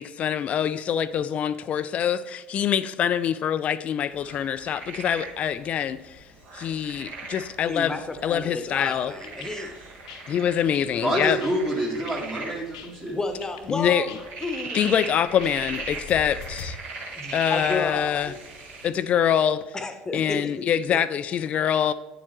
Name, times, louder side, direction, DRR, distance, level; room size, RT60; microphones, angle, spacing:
voice 1, 0.0-6.2 6.5-8.0 8.2-9.1 10.3-11.4 13.7-14.0 14.7-16.8 17.3-18.3 18.8-19.6 20.1-21.9, left 9 dB, 40° left, 0.3 m, -25 dB
sound 1, 4.1-18.9, right 4 dB, 50° right, 1.7 m, -40 dB
voice 2, 7.6-9.7 13.1-14.8 17.2-18.4 19.7-20.5 20.9-21.0, left 3 dB, 15° left, 1.0 m, -32 dB
sound 2, 8.8-16.7, left 6 dB, 70° left, 0.8 m, -44 dB
voice 3, 11.0-13.2, right 1 dB, 25° right, 1.9 m, -27 dB
8.9 x 7.3 x 3.1 m
figure-of-eight pair, 60°, 4 cm